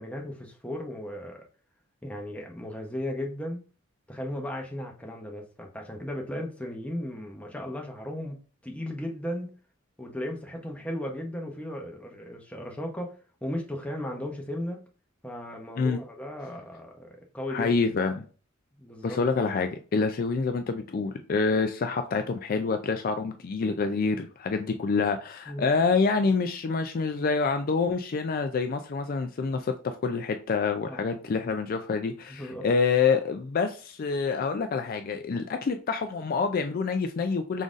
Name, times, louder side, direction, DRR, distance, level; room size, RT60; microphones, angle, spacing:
voice 1, 0.0-1.4 2.0-3.6 4.1-8.4 8.6-9.6 10.0-14.9 15.2-18.1 18.8-19.2 25.5-25.7 30.8-31.2 32.3-32.6, left 1 dB, 5° left, 0.8 m, -36 dB
voice 2, 17.5-18.2 19.0-37.6, left 4 dB, 45° left, 0.4 m, -27 dB
5.0 x 3.9 x 2.5 m
head